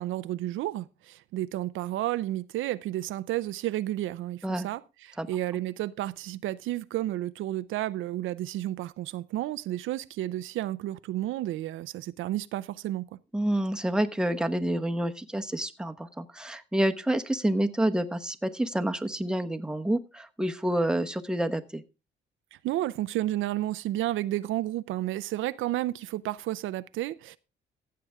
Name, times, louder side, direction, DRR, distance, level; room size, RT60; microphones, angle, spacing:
voice 1, 0.0-13.2 22.5-27.4, right 14 dB, 80° right, 0.6 m, -32 dB
voice 2, 13.3-21.8, right 1 dB, 5° right, 1.0 m, -28 dB
15.0 x 7.8 x 3.5 m
cardioid pair, 90°, 20 cm